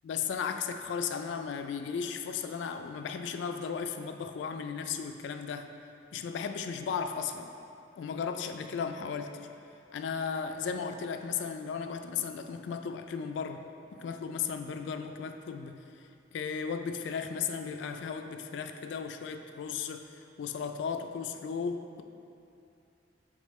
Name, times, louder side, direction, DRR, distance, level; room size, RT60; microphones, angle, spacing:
voice 1, 0.0-5.7 6.1-7.5 8.0-9.5 9.9-13.6 13.9-15.8 16.3-22.0, left 6 dB, 65° left, 6 dB, 0.3 m, -35 dB
7.2 x 5.1 x 3.1 m, 2.6 s
head